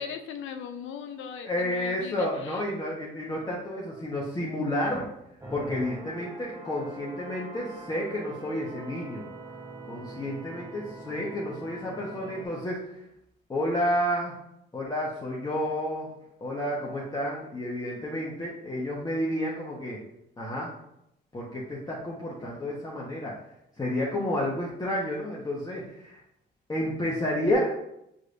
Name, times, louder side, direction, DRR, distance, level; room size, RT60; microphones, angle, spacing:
voice 1, 0.0-2.6, left 7 dB, 80° left, 7 dB, 0.6 m, -39 dB
voice 2, 1.4-5.1 5.5-9.2 9.9-13.0 13.5-14.3 14.7-16.1 16.4-20.0 20.4-20.7 21.3-23.3 23.8-26.2 26.7-27.7, left 1 dB, 20° left, -5 dB, 1.0 m, -30 dB
sound 1, 5.4-12.5, right 2 dB, 20° right, 1.0 m, -43 dB
6.3 x 3.2 x 2.6 m, 0.80 s
cardioid pair, 90°, 20 cm